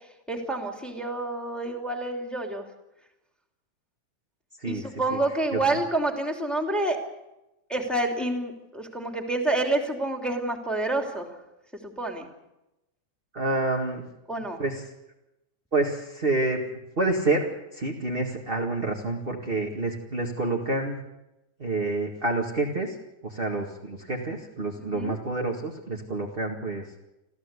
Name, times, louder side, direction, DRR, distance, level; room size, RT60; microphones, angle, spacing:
voice 1, 0.3-2.6 4.6-7.0 7.7-11.4 11.8-12.3 14.3-14.6 24.8-25.2, right 2 dB, ahead, 3 dB, 2.6 m, -28 dB
voice 2, 4.6-5.2 5.5-5.6 13.3-14.0 14.6-14.8 15.7-16.6 17.0-21.0 21.6-23.0 23.2-26.9, right 2 dB, 20° right, 0 dB, 1.6 m, -28 dB
28.0 x 14.5 x 8.3 m, 0.95 s
omnidirectional pair, 3.5 m